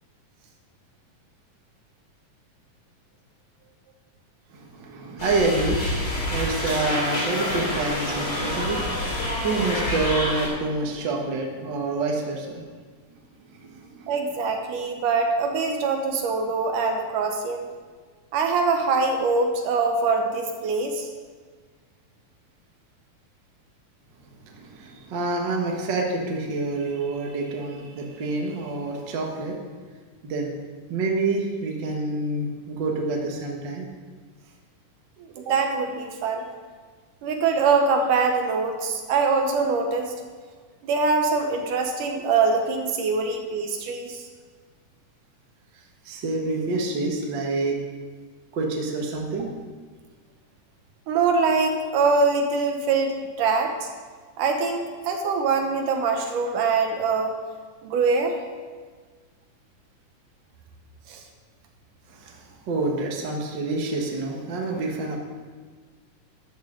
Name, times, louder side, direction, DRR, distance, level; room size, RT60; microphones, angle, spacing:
voice 1, 4.5-12.6 13.5-14.1 24.3-29.6 30.2-30.5 30.9-33.9 46.0-47.8 48.5-49.5 62.1-65.2, right 3 dB, 45° right, 0 dB, 1.6 m, -27 dB
sound 1, 5.2-10.5, left 1 dB, 40° left, 3.3 m, -27 dB
voice 2, 14.1-17.7 18.3-21.1 35.4-36.4 37.2-40.1 40.8-44.2 51.1-53.9 54.4-57.3 57.8-58.4 61.1-61.2, right 4 dB, 75° right, 3 dB, 2.4 m, -23 dB
13.5 x 10.0 x 3.9 m, 1.5 s
omnidirectional pair, 3.9 m